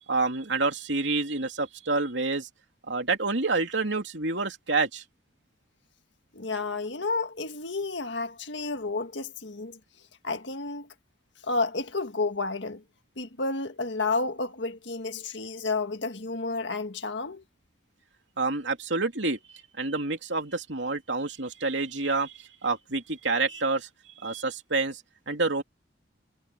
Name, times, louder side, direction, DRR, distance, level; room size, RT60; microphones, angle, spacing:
voice 1, 0.1-2.5 2.9-5.0 18.4-19.4 19.8-23.9 24.2-25.0 25.3-25.6, right 3 dB, 75° right, 3.0 m, -28 dB
voice 2, 6.3-9.8 10.2-10.9 11.4-12.8 13.2-17.4, left 3 dB, 70° left, 1.7 m, -31 dB
head